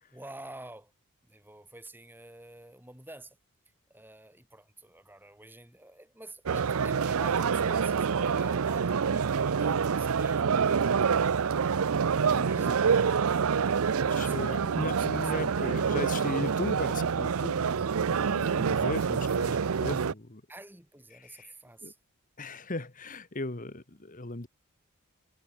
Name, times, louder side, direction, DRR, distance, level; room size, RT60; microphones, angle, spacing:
voice 1, 0.1-0.9 1.3-3.4 3.9-11.4 12.1-13.2 13.8-16.0 17.6-17.9 20.5-22.0, right 1 dB, 10° right, 4.0 m, -48 dB
sound 1, 6.5-20.1, right 6 dB, 70° right, 0.5 m, -27 dB
voice 2, 12.3-12.7 14.0-20.4 21.2-21.5 21.8-21.9 22.4-24.5, left 2 dB, 35° left, 1.6 m, -37 dB
head